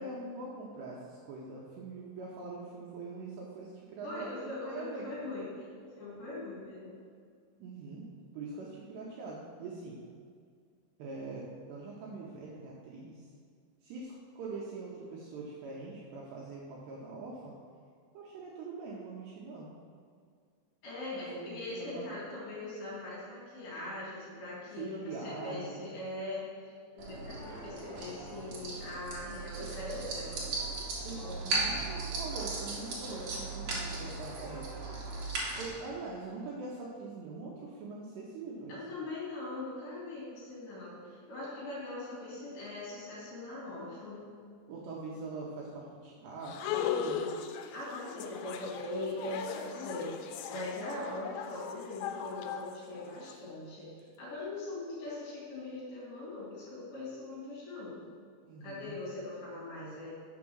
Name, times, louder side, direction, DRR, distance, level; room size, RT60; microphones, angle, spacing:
voice 1, 0.0-4.3 4.6-5.1 7.6-8.0 8.3-10.0 11.0-13.2 13.8-17.5 18.1-19.7 21.1-22.1 24.8-25.9 31.0-34.7 35.6-38.8 44.7-47.3 58.4-59.0, right 3 dB, 75° right, -4 dB, 2.6 m, -43 dB
voice 2, 4.0-5.7 5.9-7.0 20.8-26.5 26.9-30.5 38.7-44.3 47.7-58.0 58.6-60.1, left 2 dB, 50° left, -8 dB, 3.9 m, -41 dB
sound 1, 27.0-35.7, right 3 dB, 60° right, 2.3 m, -37 dB
sound 2, 46.4-53.3, left 8 dB, 85° left, 3.1 m, -38 dB
7.1 x 5.9 x 6.2 m, 2.1 s
omnidirectional pair, 5.7 m